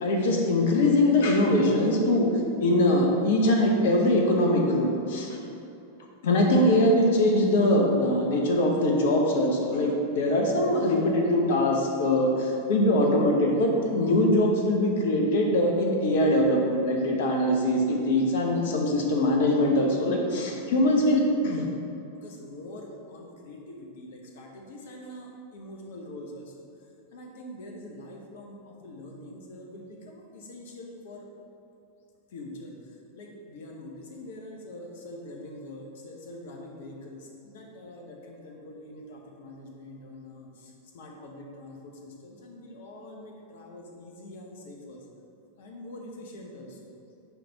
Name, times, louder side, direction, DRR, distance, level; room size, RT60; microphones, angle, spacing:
voice 1, 0.0-2.3 2.6-5.3 6.2-21.7 22.4-25.3 25.5-26.4 27.1-28.5 28.8-30.2 30.5-31.2 32.3-32.7 33.2-33.3 33.5-37.2 37.5-40.5 40.9-41.9 42.4-45.0 45.6-46.7, left 1 dB, 55° left, 1 dB, 1.0 m, -25 dB
10.5 x 3.5 x 4.0 m, 2.7 s
figure-of-eight pair, 90°, 0 cm